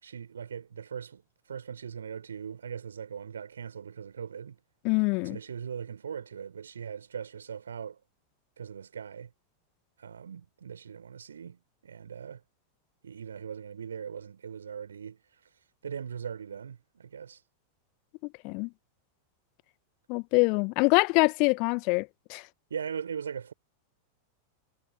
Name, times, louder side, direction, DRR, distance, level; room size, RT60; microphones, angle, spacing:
voice 1, 0.0-4.6 5.2-8.0 8.6-9.3 10.0-12.4 13.0-17.4 22.7-23.5, right 7 dB, 70° right, 3.9 m, -40 dB
voice 2, 4.8-5.4 18.4-18.7 20.1-22.4, left 32 dB, 45° left, 1.1 m, -25 dB
figure-of-eight pair, 90°, 0 cm